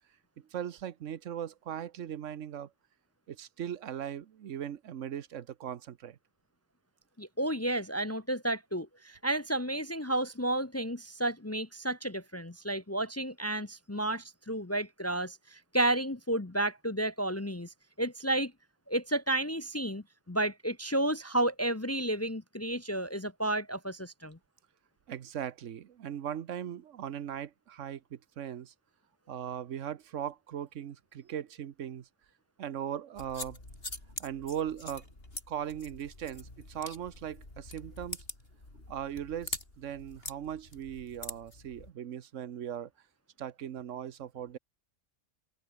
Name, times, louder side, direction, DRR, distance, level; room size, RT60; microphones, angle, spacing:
voice 1, 0.5-2.7 3.3-6.2 25.1-28.7 29.3-32.1 32.6-33.6 34.2-35.0 35.5-38.2 38.9-42.9 43.4-44.6, right 9 dB, 85° right, 1.2 m, -39 dB
voice 2, 7.2-18.5 18.9-24.4, right 1 dB, 15° left, 0.6 m, -32 dB
sound 1, 33.2-41.9, left 2 dB, 50° left, 5.0 m, -45 dB
omnidirectional pair, 1.3 m